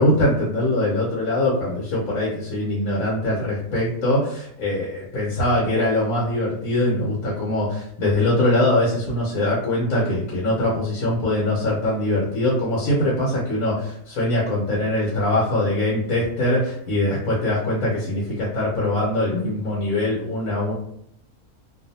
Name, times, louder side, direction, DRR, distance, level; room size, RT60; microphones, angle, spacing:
voice 1, 0.0-20.7, left 1 dB, 70° left, -6 dB, 1.2 m, -22 dB
2.6 x 2.4 x 2.7 m, 0.71 s
omnidirectional pair, 1.6 m